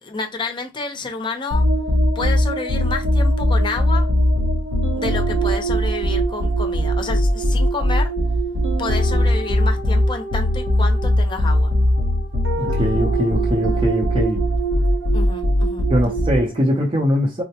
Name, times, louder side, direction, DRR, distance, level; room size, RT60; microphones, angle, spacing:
voice 1, 0.0-1.7 2.1-4.1 5.0-8.1 8.8-11.7 15.1-15.9, left 3 dB, 25° left, 0.6 m, -29 dB
sound 1, 1.5-16.7, equal, 85° right, 0.9 m, -20 dB
voice 2, 12.5-14.4 15.9-17.4, equal, 30° right, 0.6 m, -21 dB
4.3 x 2.1 x 2.8 m
head